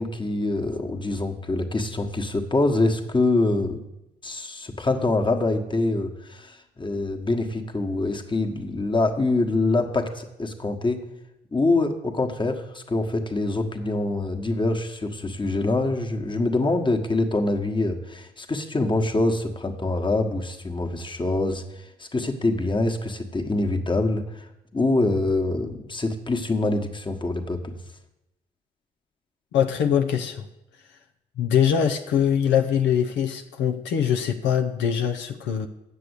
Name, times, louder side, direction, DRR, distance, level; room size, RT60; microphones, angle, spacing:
voice 1, 0.0-3.8 4.2-11.0 11.5-27.7, left 2 dB, 25° left, 4 dB, 1.4 m, -25 dB
voice 2, 29.5-30.5 31.4-35.7, left 8 dB, 85° left, 5 dB, 0.7 m, -23 dB
7.7 x 6.9 x 8.1 m, 0.91 s
supercardioid pair, 60°, 18 cm